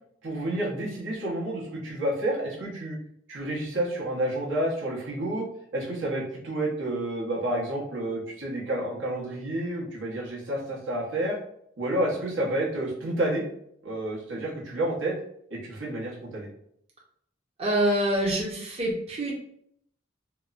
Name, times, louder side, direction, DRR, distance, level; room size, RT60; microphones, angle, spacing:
voice 1, 0.2-3.0 3.3-5.5 5.7-11.4 11.8-13.4 13.8-15.1 15.5-16.5, right 1 dB, 90° right, -4 dB, 0.9 m, -30 dB
voice 2, 17.6-19.3, right 1 dB, 35° right, -2 dB, 0.5 m, -26 dB
3.0 x 2.0 x 2.4 m, 0.70 s
head